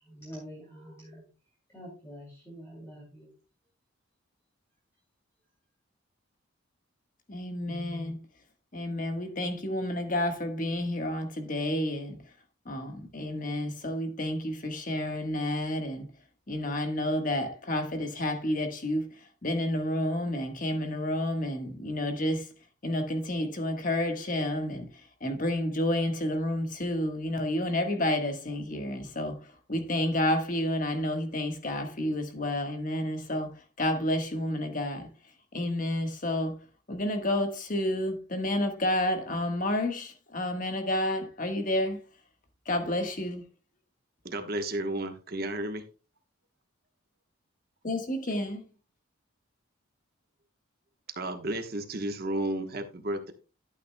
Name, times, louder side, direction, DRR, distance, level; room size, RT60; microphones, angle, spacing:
voice 1, 0.0-1.3 1.7-3.3, equal, 10° left, 2.9 m, -46 dB
voice 2, 7.3-8.2 8.7-12.2 12.6-16.1 16.5-19.1 19.4-22.5 22.8-24.9 25.2-35.1 35.5-36.6 36.9-42.0 42.6-43.4 47.8-48.6, left 1 dB, 40° left, 1.4 m, -30 dB
voice 3, 44.2-45.8 51.1-53.3, right 1 dB, 45° right, 1.1 m, -32 dB
11.5 x 9.0 x 2.2 m
head